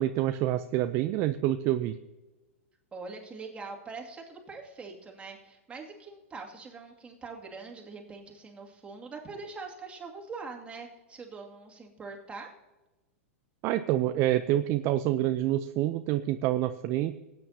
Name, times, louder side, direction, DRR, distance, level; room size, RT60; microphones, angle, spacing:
voice 1, 0.0-1.9 13.6-17.2, right 13 dB, 40° right, 10 dB, 0.5 m, -27 dB
voice 2, 2.9-12.5, right 4 dB, 15° right, 0 dB, 2.4 m, -43 dB
19.0 x 8.9 x 2.8 m, 1.1 s
hypercardioid pair, 110°, 7 cm